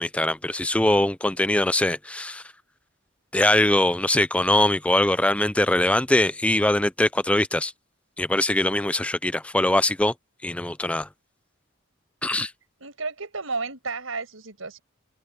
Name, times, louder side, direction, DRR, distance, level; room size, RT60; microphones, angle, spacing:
voice 1, 0.0-2.4 3.3-7.7 8.2-10.1 10.4-11.1 12.2-12.5, left 1 dB, 5° left, 0.4 m, -22 dB
voice 2, 12.8-14.8, right 4 dB, 90° right, 5.8 m, -32 dB
open air
head